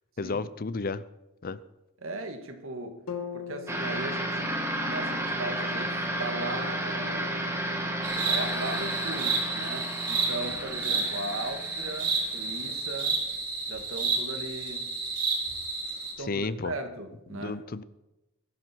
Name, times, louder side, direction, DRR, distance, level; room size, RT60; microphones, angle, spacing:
voice 1, 0.2-1.0 1.4-1.6 16.2-16.7 17.3-17.8, left 3 dB, 40° left, 16 dB, 0.6 m, -32 dB
voice 2, 2.0-3.0 3.3-4.5 4.8-7.5 8.3-13.2 13.7-14.9 16.2-17.6, right 2 dB, 65° right, 5 dB, 2.0 m, -38 dB
sound 1, 3.1-7.1, left 7 dB, 85° left, 1.9 m, -43 dB
sound 2, 3.7-12.7, right 1 dB, 10° right, 2.1 m, -32 dB
sound 3, 8.0-16.1, right 4 dB, 40° right, 4.8 m, -31 dB
22.5 x 12.5 x 4.6 m, 1.0 s
head